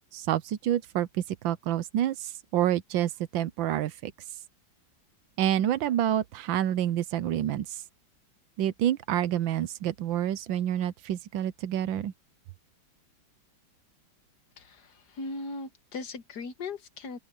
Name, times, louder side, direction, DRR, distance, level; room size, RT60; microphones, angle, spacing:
voice 1, 0.1-4.1 5.4-7.8 8.6-12.1, right 11 dB, 80° right, 1.5 m, -28 dB
voice 2, 14.6-17.2, left 3 dB, 60° left, 1.8 m, -38 dB
open air
omnidirectional pair, 2.1 m